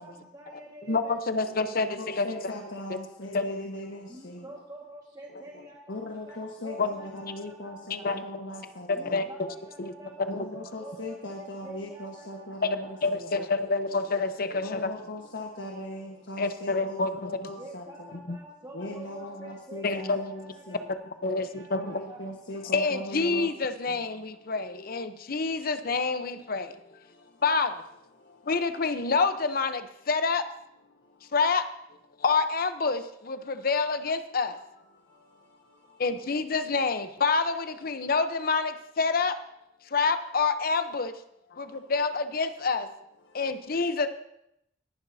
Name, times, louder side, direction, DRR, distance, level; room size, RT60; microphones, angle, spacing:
voice 1, 0.0-1.1 4.1-8.1 8.9-13.1 13.3-13.4 17.5-22.2, right 1 dB, 20° right, -2 dB, 1.7 m, -47 dB
voice 2, 0.9-2.5 3.3-3.4 6.8-6.9 8.0-8.2 8.9-9.5 9.8-9.9 10.2-10.4 12.6-14.9 16.4-17.3 18.1-18.4 19.8-20.2 21.2-21.8 22.7-27.0 27.4-27.8 28.4-30.5 31.3-31.6 32.2-34.6 36.0-39.4 39.9-41.1 41.6-42.9 43.3-44.1, left 4 dB, 55° left, 10 dB, 0.8 m, -27 dB
voice 3, 1.6-4.5 5.9-9.2 10.3-13.3 14.6-18.1 18.7-20.9 21.7-23.5 23.9-24.0, left 1 dB, 90° left, 1 dB, 1.4 m, -39 dB
19.5 x 11.0 x 2.8 m, 0.80 s
head